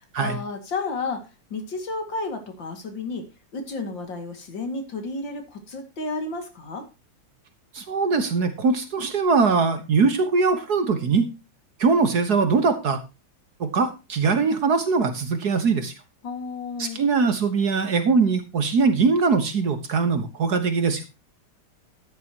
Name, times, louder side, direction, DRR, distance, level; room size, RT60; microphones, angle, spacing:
voice 1, 0.0-6.9 16.2-17.0, left 3 dB, 60° left, 6 dB, 2.9 m, -32 dB
voice 2, 7.7-11.3 11.8-13.0 13.6-15.9 16.8-21.0, right 4 dB, 50° right, 9 dB, 1.6 m, -21 dB
13.0 x 10.0 x 2.9 m, 0.27 s
omnidirectional pair, 2.3 m